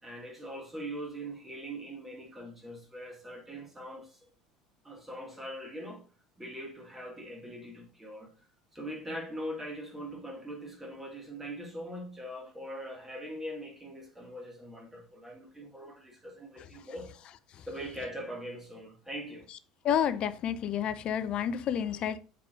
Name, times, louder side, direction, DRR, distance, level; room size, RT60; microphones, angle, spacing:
voice 1, 0.0-4.3 4.8-6.0 6.4-8.5 8.7-17.1 17.7-19.5, equal, 10° right, 1.9 m, -42 dB
voice 2, 19.8-22.2, left 9 dB, 45° left, 0.5 m, -29 dB
8.1 x 4.8 x 2.5 m
figure-of-eight pair, 65°, 2 cm